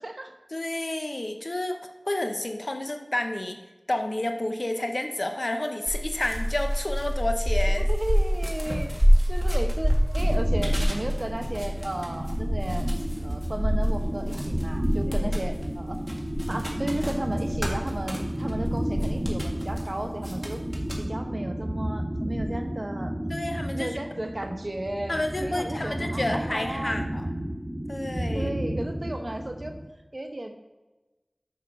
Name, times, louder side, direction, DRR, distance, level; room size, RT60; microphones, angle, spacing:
voice 1, 0.0-0.3 7.8-8.9 9.3-12.9 13.2-16.0 16.5-20.6 21.0-23.1 23.7-27.0 28.3-29.7 30.1-30.6, right 1 dB, 50° right, 5 dB, 0.9 m, -34 dB
voice 2, 0.5-1.8 2.1-3.6 3.9-7.9 15.1-15.4 23.3-24.0 25.1-27.3 27.9-28.5, left 1 dB, 55° left, 6 dB, 0.8 m, -30 dB
sound 1, 5.9-19.9 20.2-21.0, equal, 5° right, 1.8 m, -26 dB
sound 2, 10.2-29.8, right 1 dB, 25° right, 1.9 m, -32 dB
6.5 x 5.8 x 5.4 m, 1.1 s
wide cardioid pair, 40°, 0 cm